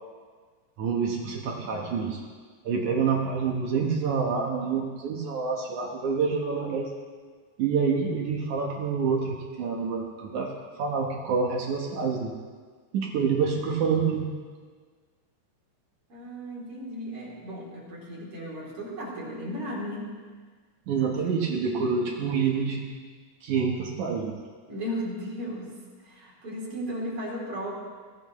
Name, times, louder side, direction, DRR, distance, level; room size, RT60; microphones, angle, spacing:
voice 1, 0.8-2.2 2.6-6.9 7.6-10.5 10.8-12.3 12.9-14.3 20.9-22.9 23.4-24.4, right 5 dB, 70° right, 0 dB, 2.7 m, -27 dB
voice 2, 16.1-20.1 21.0-22.0 24.7-25.7 26.0-27.7, equal, 45° right, -5 dB, 4.2 m, -36 dB
21.5 x 16.0 x 3.2 m, 1.5 s
omnidirectional pair, 3.8 m